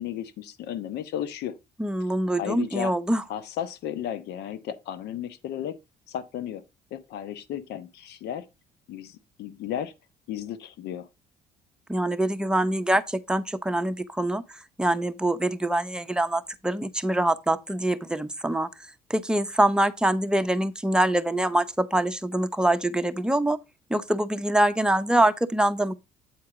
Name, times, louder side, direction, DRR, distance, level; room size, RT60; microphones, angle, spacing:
voice 1, 0.0-1.6 2.3-2.9 3.3-5.8 6.1-6.6 6.9-8.5 8.9-9.9 10.3-11.1, left 10 dB, 80° left, 1.1 m, -34 dB
voice 2, 1.8-3.2 11.9-18.7 19.1-23.6 23.9-25.9, right 1 dB, 5° right, 0.7 m, -24 dB
8.7 x 4.3 x 4.9 m
cardioid pair, 110°, 17 cm